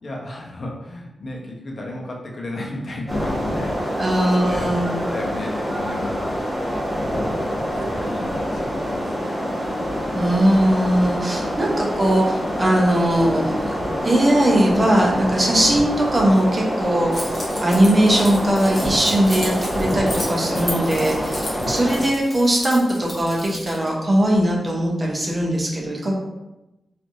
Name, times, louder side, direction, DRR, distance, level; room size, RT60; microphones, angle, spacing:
voice 1, 0.0-6.4 6.9-9.6 11.3-11.6 21.6-21.9, left 1 dB, 50° left, -2 dB, 0.6 m, -34 dB
sound 1, 3.1-22.0, equal, 10° left, 1.2 m, -26 dB
voice 2, 4.0-5.0 10.1-13.8 14.0-17.3 17.6-26.2, right 1 dB, 30° right, -2 dB, 0.7 m, -19 dB
Keys jangling, 17.1-23.9, left 1 dB, 25° left, 1.0 m, -34 dB
3.1 x 2.5 x 2.6 m, 0.96 s
wide cardioid pair, 120°, 0 cm